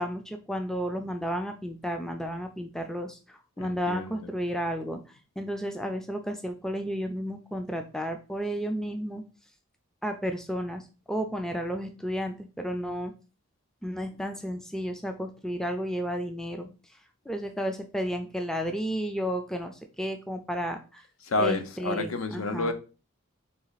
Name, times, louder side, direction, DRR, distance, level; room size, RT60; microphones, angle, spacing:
voice 1, 0.0-9.2 10.0-13.1 13.8-17.0 17.3-21.1 21.4-22.7, equal, ahead, 0.3 m, -32 dB
voice 2, 3.6-4.3 21.2-22.7, left 2 dB, 80° left, 0.6 m, -30 dB
4.2 x 3.0 x 3.9 m
head